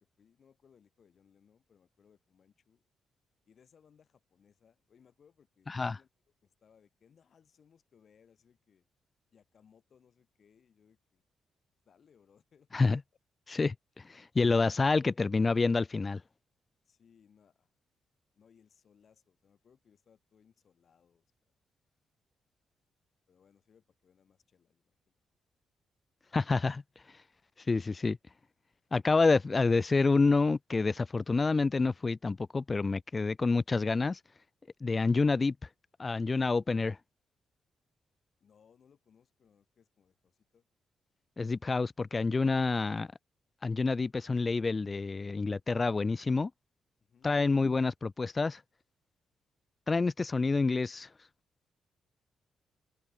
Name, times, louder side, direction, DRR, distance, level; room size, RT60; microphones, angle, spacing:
voice 1, 0.0-2.9 3.5-6.1 6.4-8.9 9.3-11.2 11.8-13.0 16.9-17.7 18.3-21.5 23.3-25.2 38.4-40.7 47.0-47.4, left 7 dB, 60° left, 5.7 m, -65 dB
voice 2, 13.5-16.2 26.3-26.8 27.7-28.2 28.9-34.2 34.8-35.5 36.0-37.0 41.4-43.1 43.6-46.5 47.2-48.6 49.9-51.1, left 3 dB, 35° left, 0.4 m, -28 dB
supercardioid pair, 60°, 0 cm